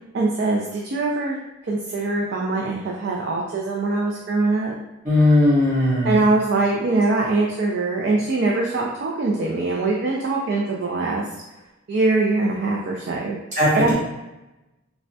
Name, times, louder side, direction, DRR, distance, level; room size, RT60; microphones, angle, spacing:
voice 1, 0.1-1.4 1.6-4.7 6.0-11.3 11.9-13.4 13.8-13.9, right 3 dB, 50° right, -2 dB, 0.3 m, -22 dB
voice 2, 5.0-6.2 13.5-13.9, left 1 dB, 35° right, -9 dB, 1.2 m, -18 dB
3.2 x 2.1 x 2.6 m, 0.98 s
head